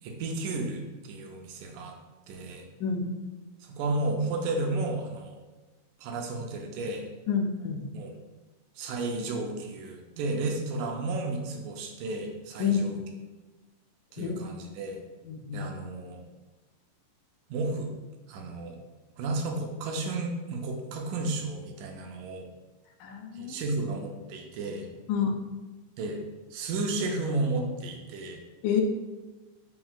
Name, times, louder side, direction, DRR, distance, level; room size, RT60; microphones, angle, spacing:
voice 1, 0.0-2.0 2.3-2.7 3.6-5.4 6.0-7.1 7.9-8.1 8.8-13.0 14.1-15.0 15.5-16.2 17.5-17.9 18.3-18.8 19.2-22.5 23.3-24.9 26.0-26.2 26.5-28.4, right 2 dB, 80° right, 2 dB, 2.2 m, -32 dB
voice 2, 7.3-7.8 12.6-12.9 14.2-14.3 15.3-15.7 23.0-23.8 25.1-25.4 28.6-28.8, left 7 dB, 85° left, 3 dB, 2.1 m, -28 dB
5.8 x 3.8 x 2.3 m, 1.2 s
omnidirectional pair, 3.8 m